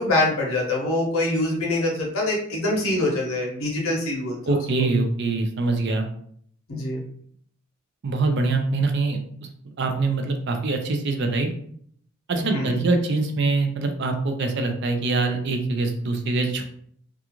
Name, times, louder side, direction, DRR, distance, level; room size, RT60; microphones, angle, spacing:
voice 1, 0.0-4.6 6.7-7.0 12.4-12.8, left 2 dB, 80° left, -2 dB, 0.7 m, -24 dB
voice 2, 4.5-6.1 8.0-9.2 9.8-11.5 12.3-16.6, right 3 dB, 55° right, 5 dB, 0.4 m, -24 dB
2.4 x 2.3 x 2.9 m, 0.62 s
head